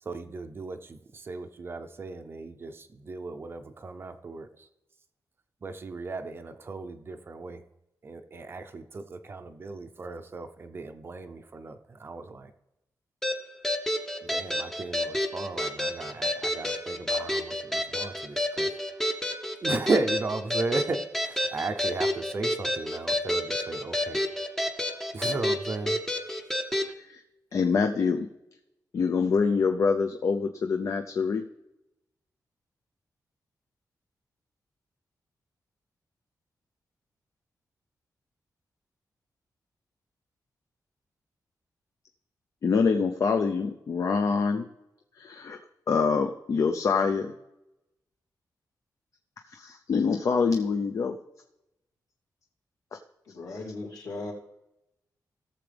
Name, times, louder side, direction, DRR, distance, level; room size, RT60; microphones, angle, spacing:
voice 1, 0.0-4.7 5.6-7.6 8.0-12.5 14.2-18.7 19.0-19.2 19.6-24.2 25.1-26.0, right 3 dB, 35° right, 8 dB, 0.6 m, -35 dB
sound 1, 13.2-26.9, left 1 dB, 5° left, 0.7 m, -29 dB
voice 2, 27.5-28.3 28.9-31.4 42.6-44.7 45.2-45.6 45.9-47.3 49.5-51.2, left 5 dB, 50° left, 5 dB, 0.6 m, -25 dB
voice 3, 53.3-54.3, left 2 dB, 70° left, -4 dB, 3.0 m, -37 dB
18.0 x 7.1 x 3.4 m, 0.91 s
wide cardioid pair, 180°, 7 cm